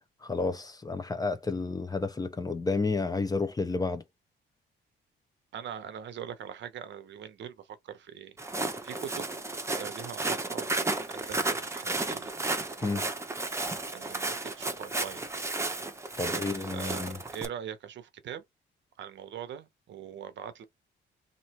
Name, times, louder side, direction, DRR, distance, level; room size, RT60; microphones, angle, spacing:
voice 1, 0.2-4.0 12.8-13.1 16.2-17.2, left 3 dB, 20° left, 0.7 m, -31 dB
voice 2, 5.5-9.3 9.7-12.4 12.8-13.1 13.9-15.4 16.3-18.4 19.0-20.6, right 9 dB, 65° right, 0.8 m, -42 dB
Walk footsteps, 8.4-17.5, right 2 dB, 15° right, 0.8 m, -33 dB
3.1 x 2.7 x 4.2 m
cardioid pair, 90°, 20 cm